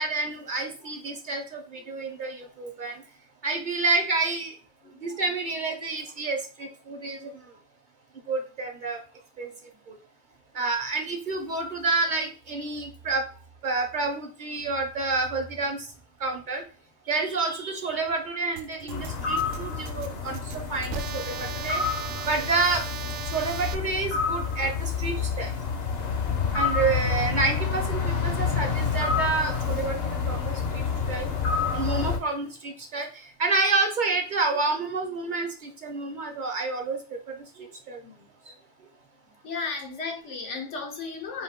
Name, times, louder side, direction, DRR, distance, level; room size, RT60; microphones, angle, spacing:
voice 1, 0.0-2.9 3.4-4.5 5.0-7.3 8.3-9.0 9.4-9.5 10.5-13.2 13.6-15.9 16.2-16.6 17.1-20.4 20.7-21.8 22.2-22.8 23.3-25.5 26.5-30.0 30.3-30.5 31.1-31.3 31.7-33.1 33.4-37.0 37.9-38.0, right 3 dB, 50° right, 4 dB, 0.8 m, -28 dB
voice 2, 4.8-5.2 9.4-9.6 39.3-41.4, left 4 dB, 85° left, 2 dB, 1.3 m, -36 dB
sound 1, 18.6-23.7, right 8 dB, 80° right, 0.9 m, -37 dB
sound 2, 18.9-32.2, left 5 dB, 60° left, 0.9 m, -28 dB
4.5 x 2.6 x 3.5 m, 0.38 s
omnidirectional pair, 1.2 m